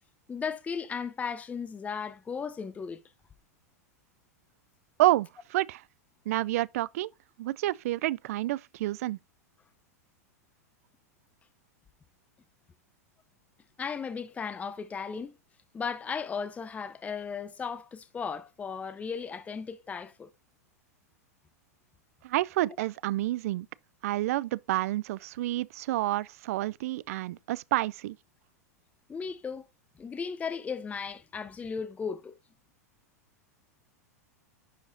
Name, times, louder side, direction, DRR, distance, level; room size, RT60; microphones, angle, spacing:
voice 1, 0.3-3.0 13.8-15.3 15.7-20.3 29.1-29.7 30.0-32.3, left 6 dB, 15° left, 0.6 m, -36 dB
voice 2, 5.0-5.8 6.3-7.1 7.4-9.2 22.2-23.7 24.0-28.2, right 16 dB, 65° right, 0.4 m, -29 dB
11.0 x 4.8 x 2.6 m
hypercardioid pair, 105°, 9 cm